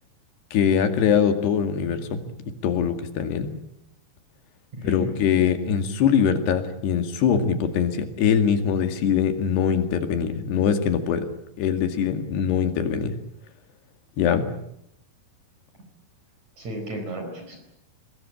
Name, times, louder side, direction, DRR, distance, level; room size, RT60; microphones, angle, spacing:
voice 1, 0.5-2.2 2.6-3.6 4.8-11.2 11.6-13.1 14.2-14.5, left 7 dB, 90° left, 8 dB, 4.3 m, -22 dB
voice 2, 4.7-5.7 16.6-17.6, right 1 dB, 45° right, 4 dB, 5.7 m, -34 dB
24.0 x 21.0 x 8.7 m, 0.77 s
omnidirectional pair, 4.6 m